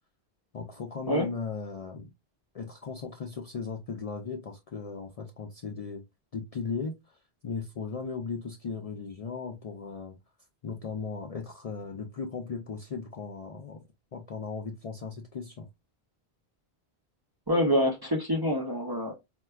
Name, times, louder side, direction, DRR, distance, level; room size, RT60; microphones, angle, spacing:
voice 1, 0.5-2.1 2.5-6.0 6.3-10.2 10.6-15.7, left 5 dB, 55° left, 0.4 m, -37 dB
voice 2, 17.5-19.1, equal, 30° right, 0.4 m, -26 dB
4.4 x 2.1 x 2.2 m
omnidirectional pair, 1.0 m